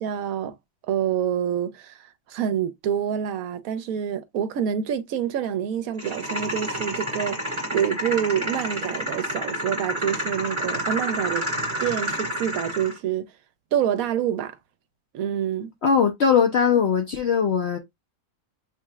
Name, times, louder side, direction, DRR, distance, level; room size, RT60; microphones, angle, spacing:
voice 1, 0.0-0.6 0.9-11.5 11.8-13.3 13.7-14.6 15.1-15.7, right 9 dB, 70° right, 1.0 m, -27 dB
sound 1, 6.0-13.0, equal, 20° right, 1.9 m, -29 dB
voice 2, 15.8-17.8, left 6 dB, 60° left, 0.7 m, -20 dB
6.5 x 3.0 x 2.3 m
omnidirectional pair, 1.6 m